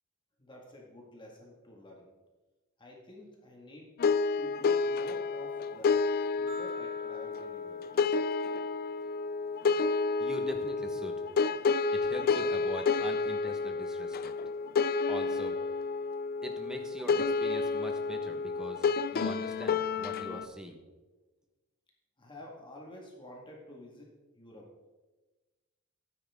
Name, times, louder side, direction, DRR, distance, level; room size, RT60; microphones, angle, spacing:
voice 1, 0.4-2.1 2.8-3.9 4.4-6.0 6.4-7.8 22.2-24.7, left 1 dB, 20° left, -2 dB, 1.9 m, -49 dB
sound 1, 4.0-20.5, left 4 dB, 40° left, 0.4 m, -30 dB
sound 2, 6.5-8.8, left 2 dB, 30° right, 2.6 m, -47 dB
voice 2, 10.2-11.2 11.9-14.3 15.1-15.6 16.4-20.8, equal, 5° right, 3 dB, 1.2 m, -42 dB
13.0 x 9.9 x 3.6 m, 1.2 s
head